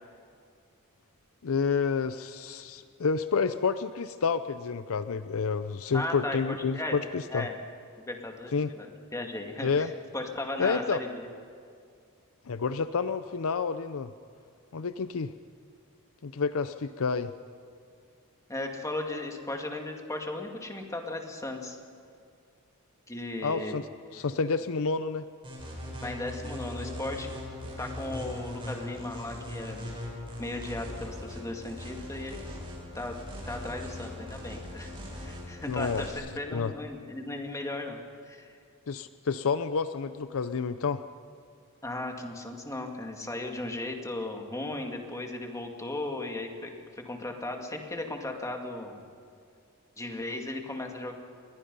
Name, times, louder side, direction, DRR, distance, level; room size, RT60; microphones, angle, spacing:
voice 1, 1.4-7.5 8.5-8.7 9.6-9.9 10.6-11.0 12.5-14.1 14.7-15.3 16.2-17.3 23.4-23.8 24.1-25.2 35.7-36.0 36.5-36.7 38.9-41.0, left 5 dB, 65° left, 12 dB, 0.6 m, -29 dB
voice 2, 5.9-7.0 7.3-7.6 8.0-8.9 9.1-11.3 18.5-21.8 23.1-23.8 26.0-27.3 27.8-29.9 30.4-32.4 32.9-33.1 33.5-34.9 35.2-38.0 38.2-38.5 41.8-46.7 47.1-49.0 50.0-51.1, left 2 dB, 15° left, 2 dB, 2.2 m, -36 dB
sound 1, 25.4-36.1, left 1 dB, 25° right, 7.1 m, -40 dB
29.0 x 22.0 x 5.5 m, 2.2 s
head